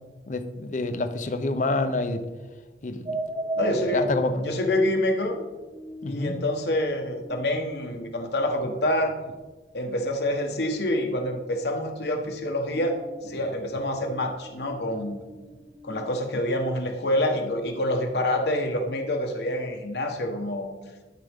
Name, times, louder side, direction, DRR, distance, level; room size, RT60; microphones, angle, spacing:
voice 1, 0.3-2.2 2.8-3.2 3.9-4.5 6.0-6.3, left 2 dB, 45° left, 9 dB, 0.6 m, -27 dB
sound 1, 3.1-8.2 10.0-10.3 12.1-16.1, right 1 dB, 40° right, 1.4 m, -38 dB
voice 2, 3.6-4.0 4.4-5.4 6.1-9.2 9.7-15.2 15.8-20.7, left 1 dB, 70° left, 3 dB, 1.2 m, -27 dB
12.0 x 5.2 x 3.6 m, 1.2 s
head